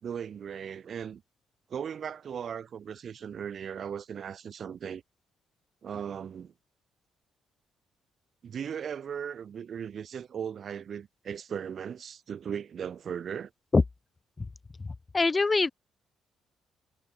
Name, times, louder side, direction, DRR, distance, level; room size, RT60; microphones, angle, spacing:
voice 1, 0.0-1.2 1.7-5.0 5.8-6.5 8.4-13.5, right 8 dB, 55° right, 2.9 m, -37 dB
voice 2, 14.8-15.7, left 3 dB, 25° left, 0.8 m, -24 dB
cardioid pair, 90°, 0 cm